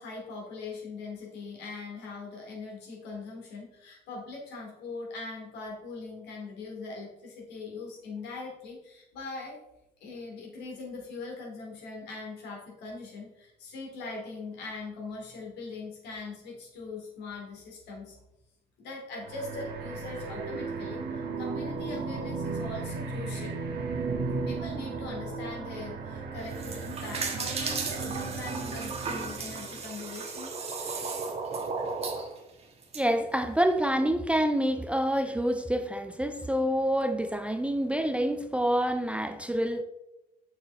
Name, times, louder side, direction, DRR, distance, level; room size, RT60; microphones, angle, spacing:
voice 1, 0.0-9.6 10.0-18.2 18.8-23.6 24.5-30.5, left 3 dB, 80° left, -1 dB, 2.5 m, -41 dB
sound 1, 19.2-29.8, right 4 dB, 75° right, 1.4 m, -35 dB
sound 2, 26.4-33.0, right 4 dB, 35° right, 1.3 m, -35 dB
voice 2, 32.9-39.8, equal, 5° right, 7 dB, 0.5 m, -27 dB
6.7 x 6.6 x 3.4 m, 0.90 s
cardioid pair, 110°, 17 cm